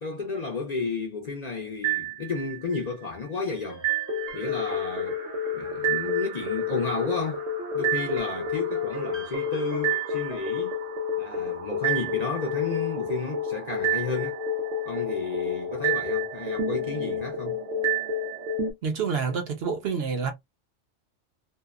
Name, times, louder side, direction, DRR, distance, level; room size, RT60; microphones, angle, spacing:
voice 1, 0.0-3.8 4.3-5.2 5.5-7.4 7.7-10.8 11.2-14.4 14.9-17.6, left 4 dB, 45° left, 0.5 m, -32 dB
sound 1, 1.8-2.8 3.8-18.7, equal, 90° right, 1.1 m, -29 dB
sound 2, 3.6-10.4, right 1 dB, 15° right, 0.6 m, -42 dB
voice 2, 18.8-20.3, right 5 dB, 60° right, 0.8 m, -28 dB
2.7 x 2.1 x 2.3 m
omnidirectional pair, 1.3 m